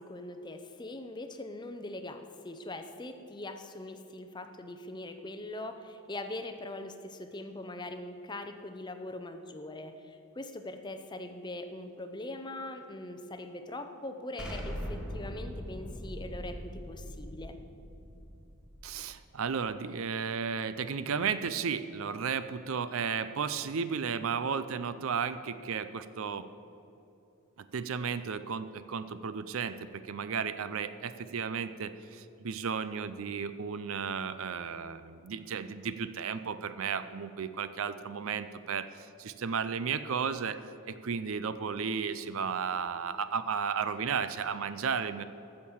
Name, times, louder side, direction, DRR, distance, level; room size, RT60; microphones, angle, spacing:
voice 1, 0.0-17.5, left 2 dB, 20° left, 7 dB, 0.6 m, -42 dB
Explosion, 14.4-19.2, equal, 5° right, 1.5 m, -41 dB
voice 2, 18.8-26.5 27.6-40.6 40.9-45.2, right 6 dB, 65° right, 13 dB, 0.5 m, -34 dB
14.0 x 6.5 x 7.1 m, 2.9 s
head